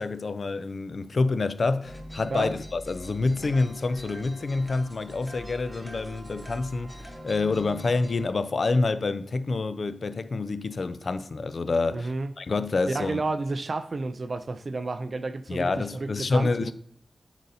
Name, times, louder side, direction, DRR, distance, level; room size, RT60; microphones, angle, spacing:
voice 1, 0.0-12.1 12.4-13.2 15.5-16.7, left 3 dB, 55° left, 0.4 m, -27 dB
sound 1, 1.8-8.3, equal, ahead, 0.9 m, -43 dB
voice 2, 11.9-12.3 12.9-16.7, right 3 dB, 50° right, 0.4 m, -31 dB
10.5 x 4.0 x 2.7 m
wide cardioid pair, 115°, 0 cm